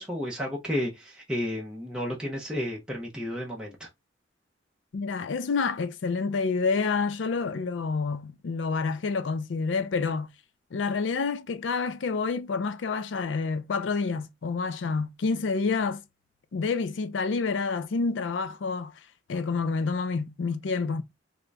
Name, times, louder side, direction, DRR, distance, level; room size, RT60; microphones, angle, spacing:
voice 1, 0.0-3.9, left 1 dB, 5° right, 0.6 m, -32 dB
voice 2, 4.9-10.3 10.7-16.0 16.5-19.0 19.3-21.0, left 4 dB, 75° left, 0.4 m, -28 dB
3.7 x 2.1 x 3.3 m
head